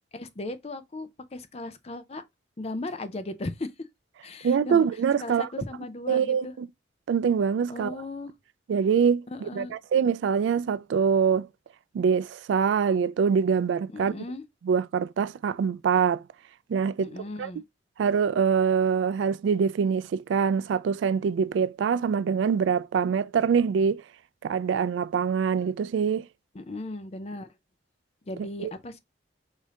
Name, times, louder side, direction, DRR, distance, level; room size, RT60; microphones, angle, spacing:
voice 1, 0.1-2.2 2.6-3.7 4.2-4.9 5.2-6.5 7.7-8.3 9.3-9.7 13.9-14.4 17.0-17.6 26.5-27.5 28.3-29.0, left 2 dB, 35° left, 0.5 m, -36 dB
voice 2, 4.4-5.5 6.1-6.7 7.1-7.9 8.7-11.5 11.9-14.1 14.6-16.2 16.7-17.1 17.4-17.5 18.0-24.0 24.4-26.3 28.6-28.7, right 6 dB, 80° right, 0.3 m, -24 dB
5.0 x 2.7 x 3.7 m
head